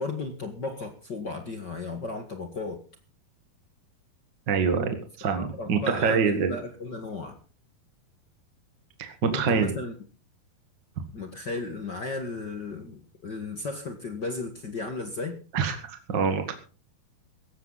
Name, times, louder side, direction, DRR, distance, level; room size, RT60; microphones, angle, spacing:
voice 1, 0.0-2.8 5.3-7.4 9.3-9.9 11.1-15.3, left 3 dB, 45° left, 5 dB, 1.5 m, -35 dB
voice 2, 4.5-6.5 9.0-9.7 15.5-16.5, right 5 dB, 45° right, 6 dB, 1.6 m, -25 dB
17.5 x 14.0 x 4.1 m, 0.36 s
omnidirectional pair, 4.4 m